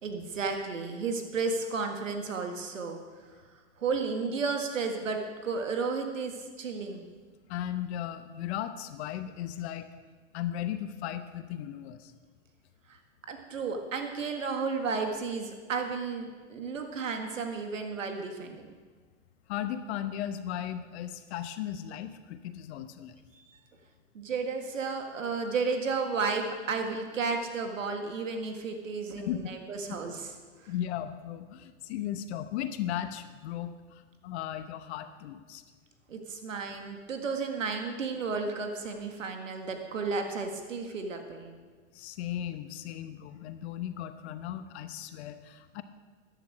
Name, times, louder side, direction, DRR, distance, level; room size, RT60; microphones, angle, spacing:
voice 1, 0.0-3.0 3.3-3.4 3.8-7.1 12.9-13.0 13.3-18.7 23.3-23.4 24.1-30.3 30.6-30.7 36.1-41.6, right 4 dB, 80° right, 4 dB, 1.8 m, -33 dB
voice 2, 7.5-9.9 10.3-12.1 19.5-23.2 29.1-29.5 30.7-35.6 41.9-45.8, left 11 dB, 60° left, 10 dB, 1.1 m, -36 dB
14.0 x 10.5 x 4.9 m, 1.5 s
hypercardioid pair, 95°, 37 cm